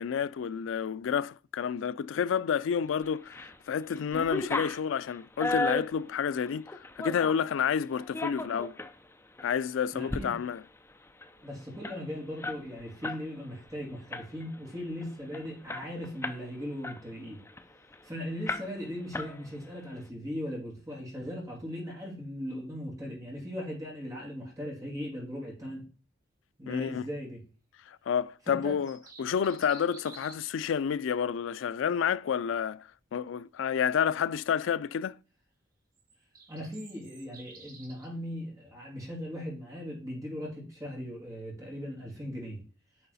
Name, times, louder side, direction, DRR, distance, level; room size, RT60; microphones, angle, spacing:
voice 1, 0.0-3.3 3.7-8.8 9.4-10.6 26.7-27.0 28.1-32.8 33.1-35.2, left 7 dB, 80° left, 0.3 m, -29 dB
sound 1, 3.0-3.6 3.9-7.5 8.0-8.9 9.4-9.5 9.9-10.2 10.5-10.6 10.9-13.2 13.5-13.7 14.1-14.6 15.0-15.1 15.3-16.5 16.8-18.0 18.5-18.9 19.1-19.8, left 2 dB, 15° left, 0.5 m, -35 dB
voice 2, 9.9-10.4 11.4-17.4 18.0-25.8 26.6-27.4 28.5-28.8 36.5-42.6, equal, 15° right, 2.9 m, -38 dB
sound 2, 28.6-30.6 36.0-38.1, right 3 dB, 45° right, 2.8 m, -52 dB
9.5 x 4.7 x 4.0 m
head